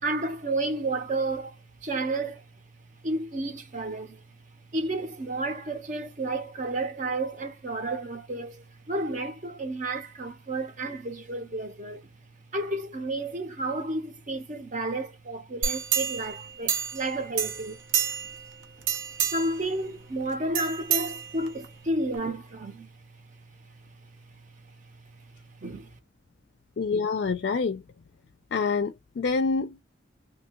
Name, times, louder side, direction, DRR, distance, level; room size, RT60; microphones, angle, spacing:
voice 1, 0.0-2.4 3.0-4.2 4.7-12.1 12.5-17.8 18.8-18.9 19.3-22.9 25.6-25.9, right 2 dB, 40° right, 0.7 m, -31 dB
sound 1, 15.6-17.1 17.4-18.4 18.8-19.6 20.5-21.7 22.1-22.2, right 8 dB, 80° right, 0.7 m, -28 dB
voice 2, 26.8-27.8 28.5-29.8, left 4 dB, 55° left, 0.4 m, -27 dB
2.8 x 2.3 x 2.9 m
head